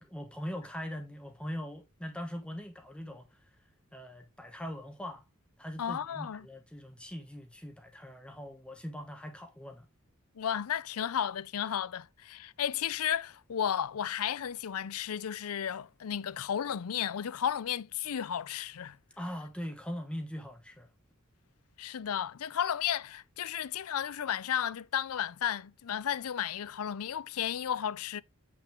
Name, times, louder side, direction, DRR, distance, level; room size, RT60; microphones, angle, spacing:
voice 1, 0.0-3.4 3.9-5.2 5.6-9.9 19.2-20.9, equal, 5° left, 1.2 m, -41 dB
voice 2, 5.8-6.5 10.4-19.0 21.8-28.2, left 9 dB, 80° left, 0.5 m, -33 dB
8.4 x 5.9 x 3.5 m
head